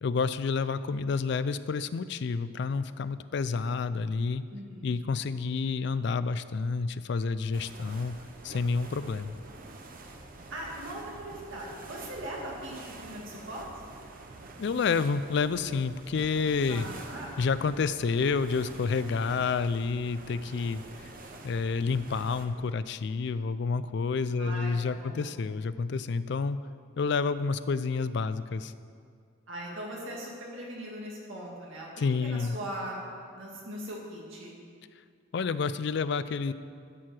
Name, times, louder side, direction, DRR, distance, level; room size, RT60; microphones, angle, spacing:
voice 1, 0.0-4.4 4.8-8.2 8.4-9.3 14.6-16.9 17.4-21.1 21.4-26.6 27.0-28.7 32.0-32.6 35.3-36.5, left 4 dB, 55° left, 14 dB, 0.3 m, -29 dB
voice 2, 4.5-5.0 10.5-13.7 16.7-17.3 24.4-24.7 25.0-25.3 29.5-31.9 32.2-33.0 33.3-34.6, right 1 dB, 70° right, -4 dB, 1.9 m, -40 dB
sound 1, 7.5-22.5, right 2 dB, 40° right, 0.8 m, -47 dB
13.0 x 4.7 x 7.5 m, 2.2 s
head